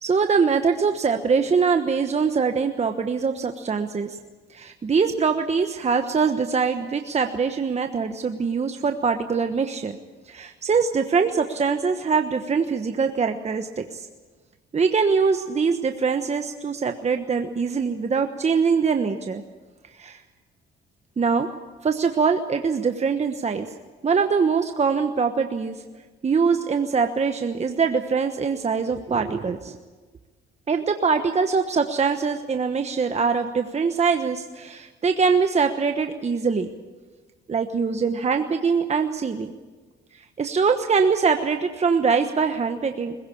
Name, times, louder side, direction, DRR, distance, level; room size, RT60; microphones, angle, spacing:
voice 1, 0.0-4.2 4.5-10.0 10.3-14.1 14.7-19.4 19.9-20.2 21.2-21.5 21.8-23.7 24.0-25.8 26.2-29.8 30.7-36.7 37.5-39.5 40.4-43.2, right 5 dB, 35° right, 6 dB, 1.2 m, -23 dB
21.0 x 16.5 x 8.6 m, 1.3 s
cardioid pair, 90°, 20 cm